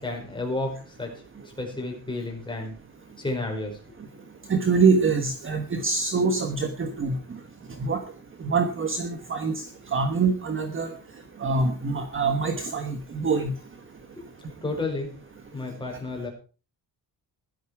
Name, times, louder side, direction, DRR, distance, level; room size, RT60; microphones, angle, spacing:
voice 1, 0.0-1.1 1.4-2.7 3.2-3.9 14.2-14.3 14.6-15.1 15.5-16.3, left 2 dB, 10° left, 1 dB, 5.3 m, -31 dB
voice 2, 4.5-7.2 7.8-8.0 8.4-9.6 9.9-10.9 11.4-13.5, right 4 dB, 30° right, 6 dB, 1.4 m, -24 dB
15.0 x 12.0 x 4.9 m, 0.37 s
cardioid pair, 180°, 43 cm